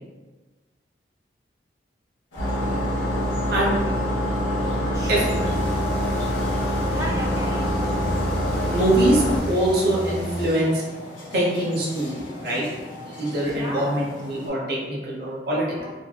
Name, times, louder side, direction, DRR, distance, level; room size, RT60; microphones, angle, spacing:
sound 1, 2.3-14.5, left 1 dB, 90° left, 0.6 m, -40 dB
sound 2, 2.4-9.4, equal, 35° left, 0.6 m, -25 dB
voice 1, 4.5-5.9 6.8-7.9 13.4-13.9 15.7-15.9, equal, 15° right, -3 dB, 0.3 m, -36 dB
sound 3, 4.9-10.5, equal, 60° left, 0.9 m, -32 dB
voice 2, 8.7-10.8 11.3-12.7 13.1-15.9, right 1 dB, 55° right, -5 dB, 0.6 m, -23 dB
2.5 x 2.1 x 2.3 m, 1.3 s
head